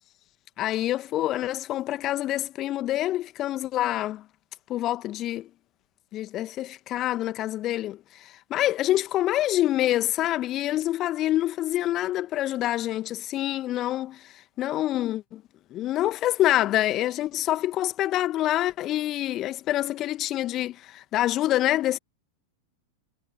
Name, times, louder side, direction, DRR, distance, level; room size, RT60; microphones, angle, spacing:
voice 1, 0.6-4.2 4.7-5.5 6.1-14.3 14.6-15.4 15.7-22.0, left 14 dB, 35° left, 1.8 m, -26 dB
figure-of-eight pair, 90°, 0 cm